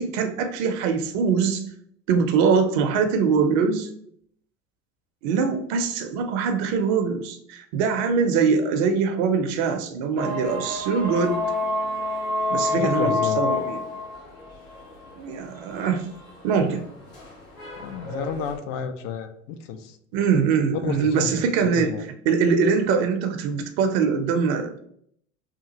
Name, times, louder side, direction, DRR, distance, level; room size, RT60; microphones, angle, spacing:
voice 1, 0.0-1.7 2.1-3.9 5.2-11.4 12.5-13.8 15.2-16.1 16.4-16.9 20.1-24.8, right 5 dB, 60° right, 7 dB, 0.6 m, -23 dB
sound 1, 10.2-18.6, left 3 dB, 80° left, 1.4 m, -29 dB
voice 2, 12.7-13.4 17.8-19.9 20.8-21.3 21.6-22.0, left 6 dB, 55° left, 8 dB, 0.5 m, -31 dB
2.9 x 2.3 x 2.8 m, 0.67 s
hypercardioid pair, 75°, 39 cm